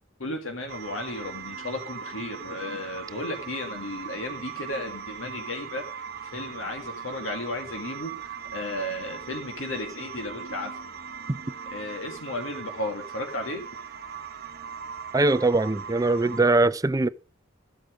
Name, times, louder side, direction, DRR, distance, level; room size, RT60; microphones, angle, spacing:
voice 1, 0.2-10.7 11.5-13.7, left 1 dB, 70° left, 2.0 m, -34 dB
sound 1, 0.7-16.4, right 7 dB, 50° right, 1.2 m, -39 dB
voice 2, 15.1-17.1, right 2 dB, 15° right, 0.5 m, -21 dB
14.0 x 8.0 x 5.0 m
head